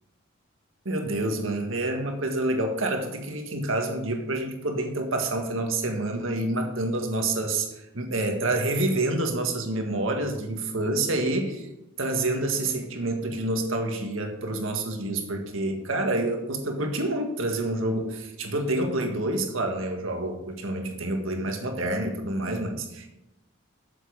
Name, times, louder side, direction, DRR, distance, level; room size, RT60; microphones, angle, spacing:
voice 1, 0.9-11.7 12.0-23.1, right 2 dB, 80° right, 4 dB, 1.8 m, -28 dB
8.3 x 7.3 x 6.5 m, 0.92 s
head